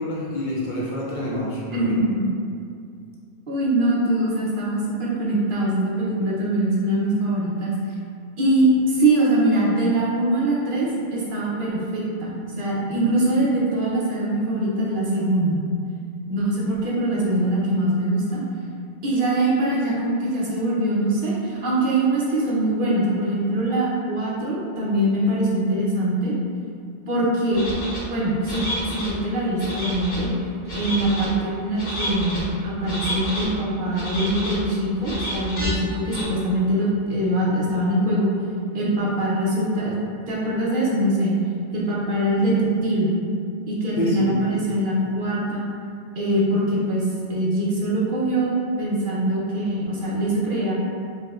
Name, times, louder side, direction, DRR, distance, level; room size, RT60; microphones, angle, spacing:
voice 1, 0.0-1.9 44.0-44.3, equal, 60° left, -5 dB, 0.6 m, -27 dB
voice 2, 1.7-2.2 3.5-7.7 8.4-15.6 16.3-18.4 19.0-26.3 27.1-27.7 28.0-30.3 30.7-38.3 38.7-40.0 40.3-41.4 41.7-42.5 42.8-43.2 43.7-45.6 46.2-50.7, right 1 dB, 60° right, -6 dB, 0.8 m, -23 dB
sound 1, 27.5-28.0 28.4-29.1 29.6-30.2 30.7-31.3 31.7-32.4 32.8-33.5 33.9-34.6 35.0-35.7 36.1-36.2, equal, 80° left, 1.3 m, -30 dB
4.3 x 2.1 x 2.3 m, 2.4 s
omnidirectional pair, 1.0 m